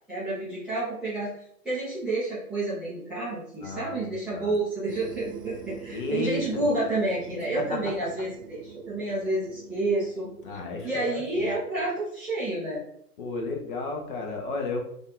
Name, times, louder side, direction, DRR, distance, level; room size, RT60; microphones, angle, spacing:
voice 1, 0.1-1.3 1.6-12.8, right 2 dB, ahead, -13 dB, 0.5 m, -30 dB
voice 2, 3.6-4.5 5.9-6.7 7.5-7.8 10.4-11.5 13.2-14.8, left 2 dB, 35° left, 2 dB, 0.8 m, -33 dB
sound 1, 4.9-12.0, right 7 dB, 90° right, 0.6 m, -44 dB
5.2 x 2.5 x 3.7 m, 0.73 s
figure-of-eight pair, 120°, 46 cm